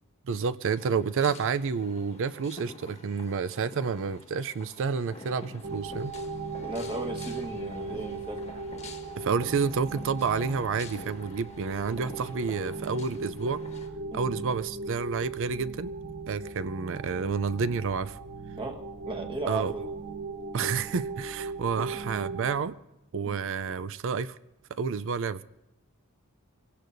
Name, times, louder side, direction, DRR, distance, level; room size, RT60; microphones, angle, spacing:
voice 1, 0.2-6.1 9.2-13.6 14.1-15.9 16.3-18.2 19.5-19.7 20.5-22.8 23.1-24.4 24.7-25.4, right 5 dB, 60° right, 0.4 m, -29 dB
sound 1, 0.6-13.9, left 3 dB, 30° left, 1.3 m, -48 dB
sound 2, 5.6-22.6, right 3 dB, 40° right, 1.2 m, -38 dB
voice 2, 6.6-8.5 14.1-14.3 18.5-19.9 20.6-20.7 21.8-21.9 23.2-23.4, right 2 dB, 25° right, 1.4 m, -36 dB
23.5 x 17.0 x 2.6 m
head